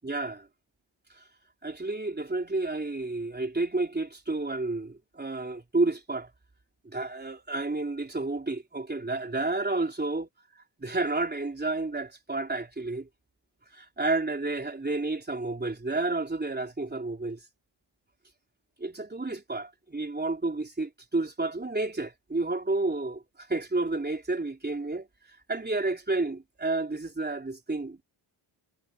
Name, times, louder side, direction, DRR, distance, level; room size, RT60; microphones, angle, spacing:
voice 1, 0.0-0.5 1.6-6.3 6.8-10.3 10.8-13.1 13.7-17.4 18.8-25.1 25.5-28.0, right 2 dB, 20° right, 3.8 m, -30 dB
cardioid pair, 100°, 48 cm